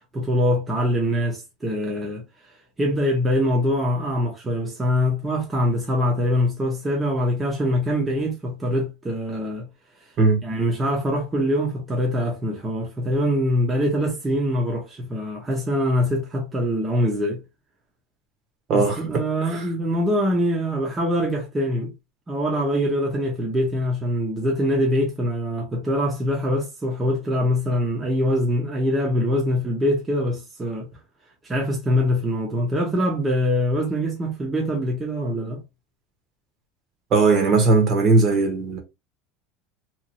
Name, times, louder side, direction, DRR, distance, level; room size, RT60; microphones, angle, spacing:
voice 1, 0.1-2.2 2.8-9.7 10.4-17.4 18.7-21.9 22.3-30.8 31.4-35.6, equal, 15° right, 0.8 m, -23 dB
voice 2, 18.7-19.2 19.5-19.7 37.1-38.8, right 3 dB, 40° right, 1.0 m, -18 dB
2.9 x 2.5 x 2.6 m
supercardioid pair, 140°, 0 cm